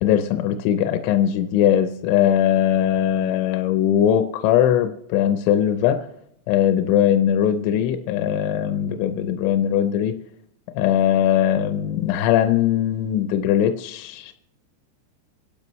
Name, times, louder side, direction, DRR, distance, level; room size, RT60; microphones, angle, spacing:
voice 1, 0.0-6.1 6.5-10.1 10.8-14.3, left 10 dB, 85° left, 7 dB, 3.1 m, -20 dB
26.0 x 12.0 x 3.1 m, 0.74 s
omnidirectional pair, 5.3 m